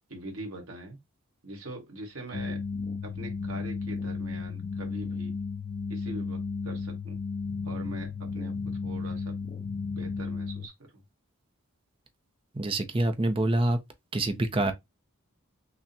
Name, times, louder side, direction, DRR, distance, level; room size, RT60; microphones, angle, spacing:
voice 1, 0.1-1.0 1.4-2.6 3.0-5.3 5.9-7.2 7.6-8.6 8.8-9.3 9.9-11.0, right 2 dB, 75° right, 1.5 m, -42 dB
sound 1, 2.3-10.7, left 4 dB, 35° left, 0.4 m, -34 dB
voice 2, 12.5-13.8 14.1-14.7, right 2 dB, 25° right, 0.5 m, -26 dB
5.9 x 2.1 x 2.7 m
head